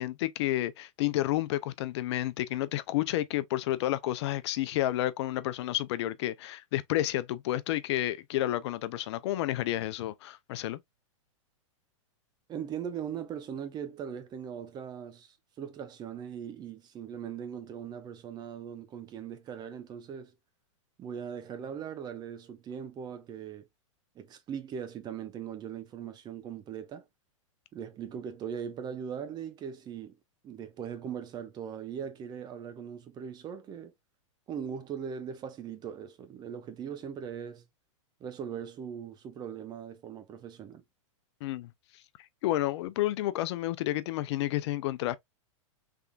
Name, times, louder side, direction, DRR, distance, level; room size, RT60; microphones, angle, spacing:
voice 1, 0.0-10.8 41.4-41.7 42.4-45.2, left 15 dB, 55° left, 0.4 m, -30 dB
voice 2, 12.5-20.3 21.0-23.7 24.2-27.1 27.7-30.2 30.4-33.9 34.5-37.7 38.2-40.8, right 8 dB, 25° right, 0.7 m, -40 dB
3.6 x 3.4 x 2.3 m
hypercardioid pair, 125°, 17 cm